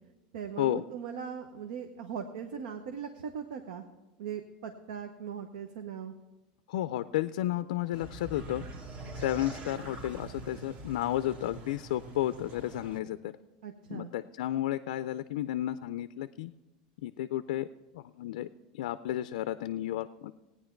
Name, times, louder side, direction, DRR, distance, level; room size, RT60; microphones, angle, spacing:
voice 1, 0.3-3.8 4.2-6.1 13.6-14.1, right 7 dB, 80° right, 6 dB, 0.9 m, -39 dB
voice 2, 6.7-8.7 9.1-13.3 13.9-16.5 17.0-17.7 17.9-18.5 18.7-20.3, left 13 dB, 80° left, 12 dB, 0.4 m, -32 dB
sound 1, 7.9-13.0, right 2 dB, 30° right, 1.2 m, -44 dB
16.0 x 9.6 x 4.4 m, 1.1 s
supercardioid pair, 145°, 4 cm